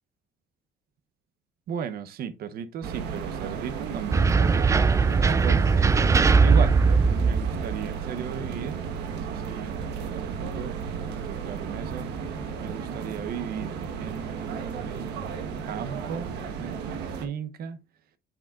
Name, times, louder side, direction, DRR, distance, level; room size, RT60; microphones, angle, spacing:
voice 1, 1.7-5.8 6.4-6.8 7.1-8.8 9.1-9.8 10.0-10.8 11.2-12.1 12.6-15.4 15.7-17.8, right 8 dB, 65° right, 0.9 m, -36 dB
sound 1, 2.8-17.3, right 6 dB, 80° right, 1.3 m, -34 dB
sound 2, 4.1-7.7, right 4 dB, 20° right, 0.3 m, -20 dB
8.2 x 6.4 x 2.5 m
cardioid pair, 110°, 17 cm